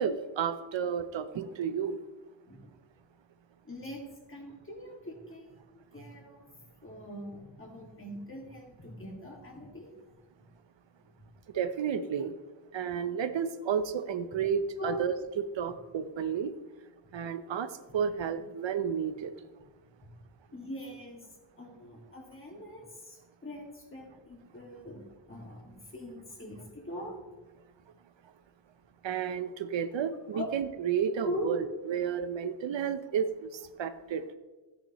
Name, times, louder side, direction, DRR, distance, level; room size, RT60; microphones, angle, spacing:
voice 1, 0.0-2.0 11.5-12.3 12.7-16.5 17.1-19.3 29.0-34.2, right 7 dB, 75° right, 10 dB, 0.7 m, -32 dB
voice 2, 3.6-4.0 4.3-6.5 6.8-10.0 14.8-15.0 20.5-21.2 21.6-27.2 30.3-30.5 31.2-31.5, left 1 dB, 30° left, 0 dB, 2.1 m, -42 dB
13.5 x 9.5 x 3.0 m, 1.2 s
wide cardioid pair, 135°, 45 cm